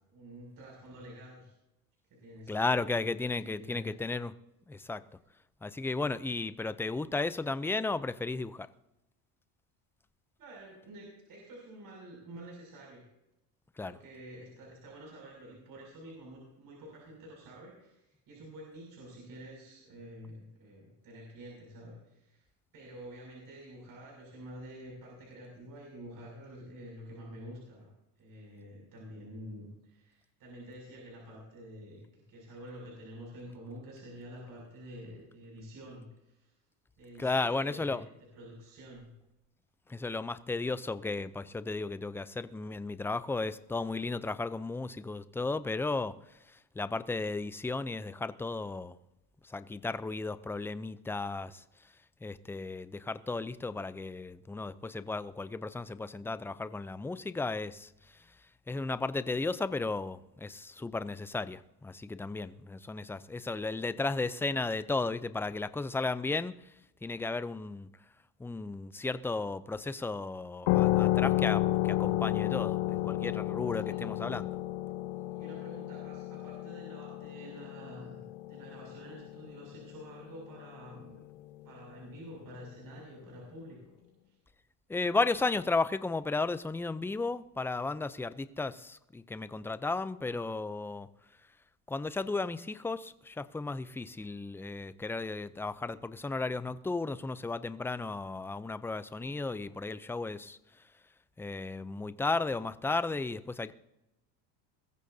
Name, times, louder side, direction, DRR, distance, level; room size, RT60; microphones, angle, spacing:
voice 1, 0.1-1.5 2.1-3.0 3.5-3.9 10.4-13.0 13.8-22.4 22.7-27.9 28.2-36.5 37.0-38.0 38.3-39.1 73.8-74.1 75.3-78.2 78.5-81.2 81.6-83.8 84.3-84.4, right 1 dB, 45° right, 6.6 m, -48 dB
voice 2, 2.5-4.3 4.7-5.0 5.6-8.7 13.8-14.0 37.2-38.1 39.9-49.0 49.4-51.9 52.2-58.4 58.7-66.7 67.0-67.9 68.4-74.6 84.9-91.1 91.9-100.9 101.4-103.7, left 3 dB, 5° left, 0.4 m, -34 dB
sound 1, 70.7-79.9, left 16 dB, 65° left, 1.0 m, -31 dB
21.5 x 14.0 x 2.7 m
supercardioid pair, 105°, 46 cm